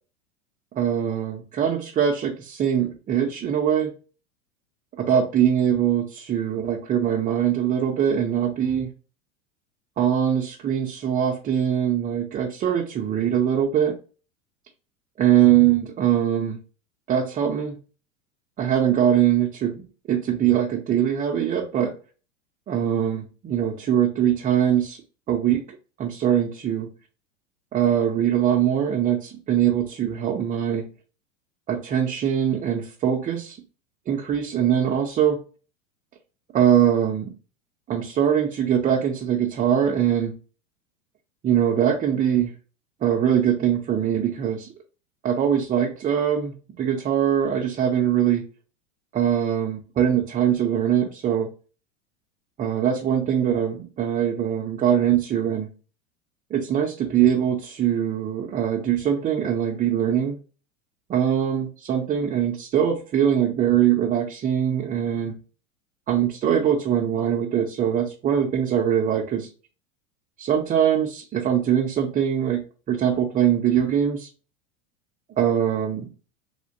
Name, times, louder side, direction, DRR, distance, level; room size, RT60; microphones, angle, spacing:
voice 1, 0.8-3.9 5.0-8.9 10.0-14.0 15.2-16.6 17.1-17.8 18.6-21.9 22.7-25.0 25.3-25.6 26.0-26.9 27.7-30.9 31.7-33.6 34.1-35.4 36.5-37.3 37.9-40.4 41.4-42.5 43.0-44.7 45.2-48.5 49.1-51.5 52.6-55.7 56.5-60.4 61.1-65.3 66.1-69.5 70.4-74.3 75.4-76.1, right 9 dB, 20° right, 0 dB, 0.5 m, -22 dB
3.5 x 2.7 x 2.6 m, 0.36 s
hypercardioid pair, 95°, 39 cm